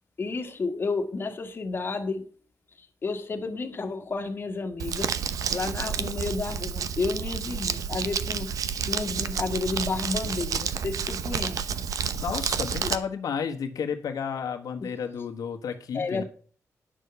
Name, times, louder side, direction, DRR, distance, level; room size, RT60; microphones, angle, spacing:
voice 1, 0.2-2.2 2.8-5.2 5.5-11.8 12.8-12.9 15.9-16.2, left 4 dB, 35° left, 3 dB, 1.6 m, -31 dB
Crumpling crinkling, 4.8-13.0, right 7 dB, 75° right, 0.8 m, -30 dB
voice 2, 12.1-16.2, left 7 dB, 90° left, 4 dB, 1.3 m, -32 dB
10.0 x 6.4 x 6.9 m, 0.42 s
wide cardioid pair, 150°, 6 cm